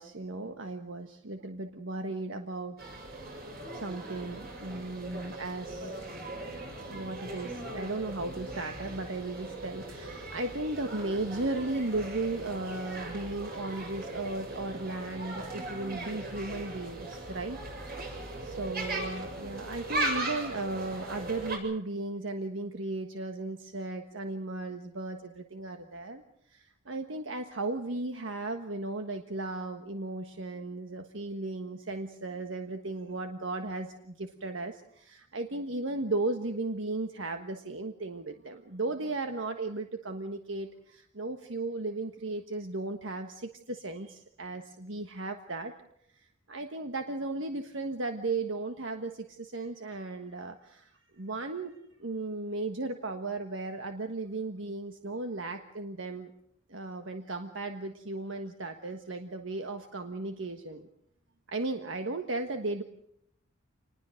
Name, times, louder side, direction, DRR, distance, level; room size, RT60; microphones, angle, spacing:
voice 1, 0.0-2.8 3.3-6.0 6.9-17.6 17.8-18.0 18.4-26.2 26.5-45.7 46.1-56.3 56.7-60.9 61.5-62.8, right 2 dB, 75° right, 6 dB, 1.4 m, -36 dB
sound 1, 2.8-21.6, right 2 dB, 50° right, 7.4 m, -39 dB
27.0 x 20.5 x 6.5 m, 0.72 s
head